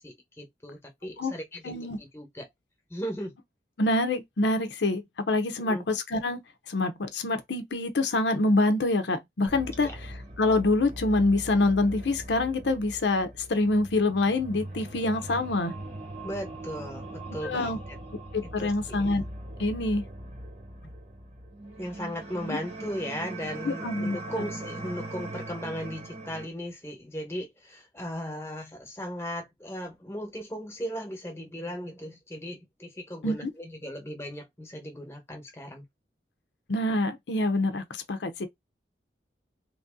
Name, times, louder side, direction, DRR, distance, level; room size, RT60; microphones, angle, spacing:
voice 1, 0.0-1.7 2.0-2.5 2.9-3.4 5.6-5.8 9.8-10.0 16.2-17.8 18.4-19.1 21.8-35.8, equal, 15° left, 1.0 m, -37 dB
voice 2, 1.6-2.0 3.8-6.4 6.7-9.9 10.4-15.8 17.4-17.8 18.3-19.2 19.6-20.1 22.4-22.6 23.6-24.2 33.2-33.5 36.7-38.5, left 2 dB, 85° left, 0.7 m, -26 dB
sound 1, 9.5-26.5, right 1 dB, 35° right, 1.0 m, -40 dB
3.1 x 2.7 x 3.6 m
head